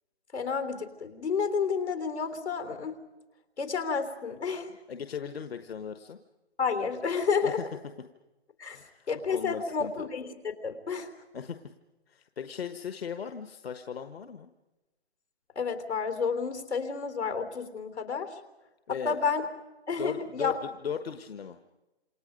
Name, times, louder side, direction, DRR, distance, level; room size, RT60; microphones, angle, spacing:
voice 1, 0.3-3.0 3.6-4.7 6.6-7.6 8.6-8.8 9.1-10.3 10.6-11.1 15.6-18.4 18.9-19.5 19.9-20.6, left 5 dB, 85° left, 7 dB, 3.7 m, -30 dB
voice 2, 4.9-6.2 7.4-7.6 8.7-9.9 11.3-11.6 12.1-14.5 18.9-19.2 20.0-20.6 20.8-21.6, left 7 dB, 65° left, 8 dB, 1.4 m, -37 dB
28.0 x 27.0 x 5.3 m, 1.1 s
hypercardioid pair, 155°, 33 cm